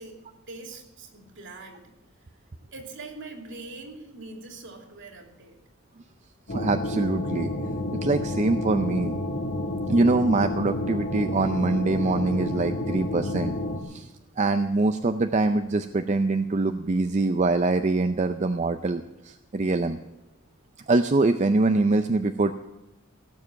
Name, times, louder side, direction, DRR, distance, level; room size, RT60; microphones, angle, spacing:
voice 1, 0.0-1.9 2.7-5.6, right 3 dB, 60° right, 3 dB, 2.8 m, -43 dB
sound 1, 6.5-13.8, left 1 dB, 55° left, 1.8 m, -30 dB
voice 2, 6.5-7.5 8.0-9.1 9.9-13.6 13.9-14.1 14.4-20.0 20.9-22.6, right 3 dB, 30° right, 8 dB, 0.5 m, -24 dB
17.0 x 7.4 x 7.6 m, 1.0 s
head